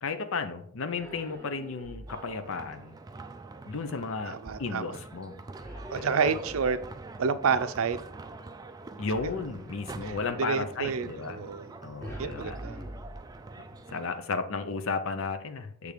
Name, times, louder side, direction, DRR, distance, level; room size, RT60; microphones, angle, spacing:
voice 1, 0.0-3.0 3.7-5.3 6.0-6.3 9.0-11.4 11.8-12.6 13.9-15.9, left 4 dB, 65° left, 0.6 m, -34 dB
sound 1, 0.9-2.4 5.6-7.1 9.1-10.3 12.0-13.7, equal, 10° left, 1.5 m, -44 dB
sound 2, 2.1-14.2, right 3 dB, 20° right, 0.3 m, -45 dB
voice 2, 4.2-5.0 5.9-6.8 7.2-8.0 10.0-11.7 12.2-12.8, right 6 dB, 75° right, 0.5 m, -29 dB
6.6 x 3.4 x 5.0 m
head